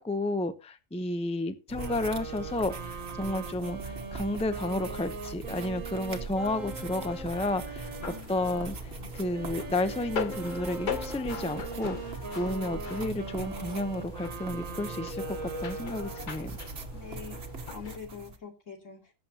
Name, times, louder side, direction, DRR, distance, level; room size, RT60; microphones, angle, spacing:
voice 1, 0.0-7.9 8.3-16.5, left 2 dB, 5° left, 0.6 m, -32 dB
sound 1, 1.7-18.4, right 4 dB, 50° right, 1.4 m, -41 dB
sound 2, 1.7-8.7 9.3-16.5, right 5 dB, 85° right, 1.7 m, -41 dB
sound 3, 6.4-18.0, left 5 dB, 45° left, 0.8 m, -41 dB
voice 2, 8.0-8.7 16.9-17.4 17.7-19.1, left 6 dB, 70° left, 3.2 m, -44 dB
17.5 x 7.6 x 2.9 m
omnidirectional pair, 1.3 m